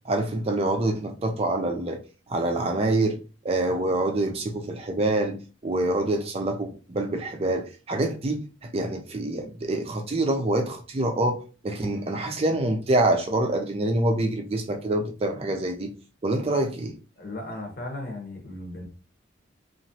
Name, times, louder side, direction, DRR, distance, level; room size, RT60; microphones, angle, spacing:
voice 1, 0.0-2.0 2.3-3.2 3.4-15.9 16.2-17.0, right 2 dB, 30° right, 0.4 m, -26 dB
voice 2, 17.2-18.9, left 1 dB, 50° left, 0.9 m, -36 dB
2.9 x 2.4 x 2.7 m
head